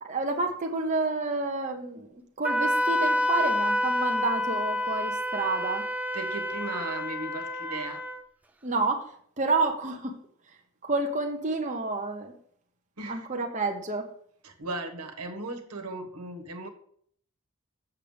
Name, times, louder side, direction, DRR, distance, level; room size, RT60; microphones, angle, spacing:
voice 1, 0.0-5.8 8.6-9.1 9.4-10.2 10.8-12.3 13.1-14.1, right 3 dB, 35° right, 3 dB, 0.9 m, -29 dB
Wind instrument woodwind instrument, 2.4-8.2, left 1 dB, 5° right, 0.5 m, -28 dB
voice 2, 6.1-8.0 13.0-13.3 14.4-16.7, right 2 dB, 90° right, 5 dB, 1.5 m, -36 dB
7.4 x 6.7 x 5.1 m, 0.62 s
head